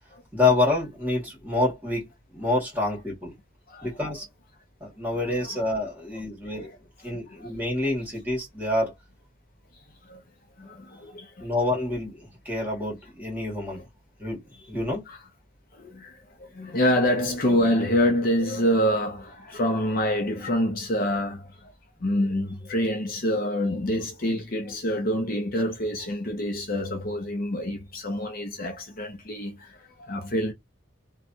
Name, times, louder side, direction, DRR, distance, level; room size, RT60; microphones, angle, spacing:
voice 1, 0.3-3.3 3.8-4.3 4.8-6.7 7.0-8.9 11.4-13.8 14.2-15.0, left 2 dB, 10° right, 1.7 m, -27 dB
voice 2, 10.6-11.4 15.1-15.2 15.7-21.7 22.0-30.5, equal, 45° left, 0.7 m, -26 dB
3.1 x 2.4 x 2.6 m
head